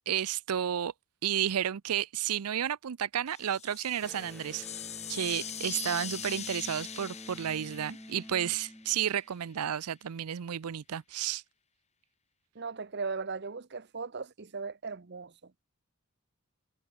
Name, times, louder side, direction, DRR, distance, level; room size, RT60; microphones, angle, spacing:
voice 1, 0.1-0.9 1.2-4.7 5.1-11.4, right 9 dB, 90° right, 0.5 m, -32 dB
sound 1, 3.3-9.2, left 9 dB, 30° left, 5.4 m, -42 dB
Electric guitar, 4.0-9.5, equal, 5° left, 1.7 m, -49 dB
voice 2, 12.5-15.5, right 4 dB, 50° right, 0.8 m, -38 dB
head